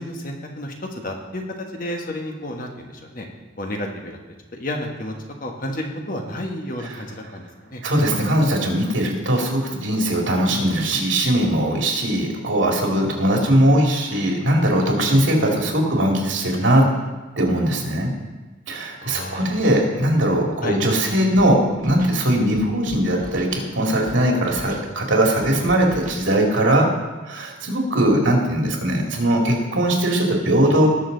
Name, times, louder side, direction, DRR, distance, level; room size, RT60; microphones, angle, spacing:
voice 1, 0.0-3.3 3.6-4.2 4.6-5.1 5.4-7.8 15.2-15.3 19.0-19.6 20.6-20.8, left 1 dB, 45° left, 2 dB, 1.4 m, -31 dB
voice 2, 7.8-16.8 17.4-18.1 18.7-26.9 27.3-30.9, right 1 dB, 80° right, 0 dB, 2.5 m, -20 dB
Scratching (performance technique), 21.3-21.5 21.8-22.2 22.5-23.5 24.0-24.2 24.5-24.9 25.4-26.2, right 1 dB, 45° right, 1.1 m, -37 dB
19.0 x 6.6 x 4.0 m, 1.2 s
head